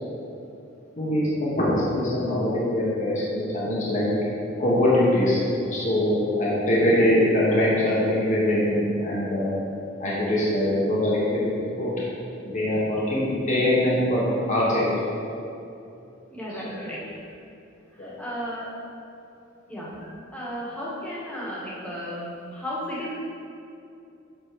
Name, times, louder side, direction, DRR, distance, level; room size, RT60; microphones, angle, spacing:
voice 1, 1.0-1.3 1.6-4.1 4.6-5.4 5.7-9.5 10.0-11.9 12.4-15.1 16.6-16.8 18.0-18.1 18.6-18.7, left 1 dB, 40° left, -7 dB, 1.5 m, -23 dB
voice 2, 16.3-17.0 18.0-18.7 19.7-19.9 20.3-23.1, equal, 5° left, -7 dB, 1.9 m, -34 dB
8.0 x 4.2 x 6.3 m, 2.7 s
head